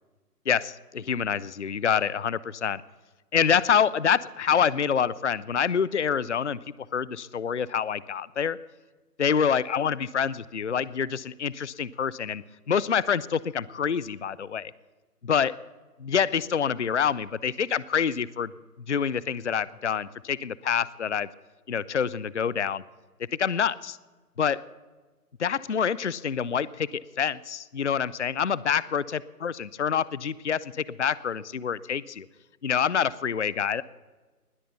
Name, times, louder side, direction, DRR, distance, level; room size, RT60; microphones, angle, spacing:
voice 1, 0.5-2.8 3.3-6.6 6.9-8.6 9.2-14.7 15.2-15.5 16.0-18.5 18.9-21.3 21.7-22.8 23.4-24.0 24.4-24.6 25.4-29.0 29.4-32.3 32.6-33.8, left 7 dB, 50° left, 20 dB, 0.5 m, -26 dB
20.0 x 8.9 x 7.0 m, 1.3 s
hypercardioid pair, 165°, 47 cm